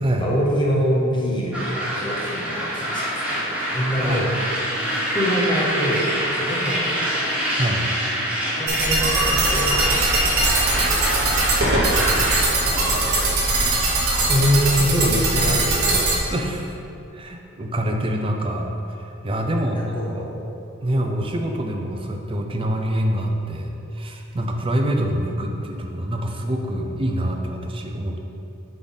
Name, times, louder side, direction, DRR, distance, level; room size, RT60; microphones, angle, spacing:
voice 1, 0.2-3.4 3.7-4.3 5.1-7.1 8.6-10.4 10.7-12.5 12.8-13.2 14.3-16.1 19.4-20.5, equal, 20° left, -3 dB, 0.8 m, -25 dB
sound 1, 1.5-12.4, equal, 5° right, 1.2 m, -26 dB
sound 2, 8.7-16.2, right 2 dB, 50° right, 1.2 m, -21 dB
sound 3, 8.9-15.9, right 2 dB, 75° right, 1.0 m, -31 dB
voice 2, 12.7-13.0 16.3-16.7 17.1-18.7 19.0-20.2 20.8-28.2, right 1 dB, 25° right, 2 dB, 0.5 m, -25 dB
9.3 x 3.9 x 4.0 m, 2.7 s
head